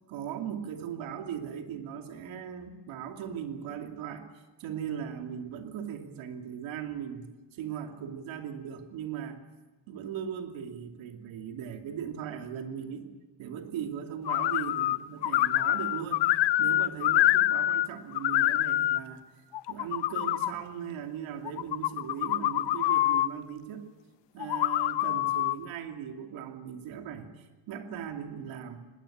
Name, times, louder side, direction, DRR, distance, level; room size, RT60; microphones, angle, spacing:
voice 1, 0.1-9.4 9.9-13.1 13.4-16.3 16.6-19.2 19.7-23.8 24.3-28.8, right 8 dB, 75° right, 4 dB, 2.7 m, -38 dB
sound 1, 14.3-15.0 15.2-17.9 18.1-19.0 19.5-20.5 21.5-23.3 24.4-25.6, left 15 dB, 60° left, 0.8 m, -26 dB
20.5 x 18.5 x 8.7 m, 1.2 s
cardioid pair, 180°, 47 cm